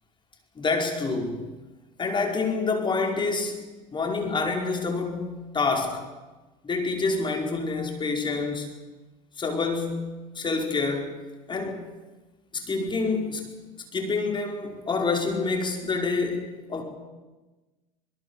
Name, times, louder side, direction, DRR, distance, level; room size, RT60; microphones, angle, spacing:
voice 1, 0.6-1.5 2.0-3.6 3.9-6.0 6.6-8.7 9.4-11.2 11.5-11.8 12.5-13.5 13.9-16.8, left 4 dB, 25° left, 3 dB, 5.2 m, -27 dB
24.5 x 21.5 x 7.3 m, 1.2 s
hypercardioid pair, 85°, 18 cm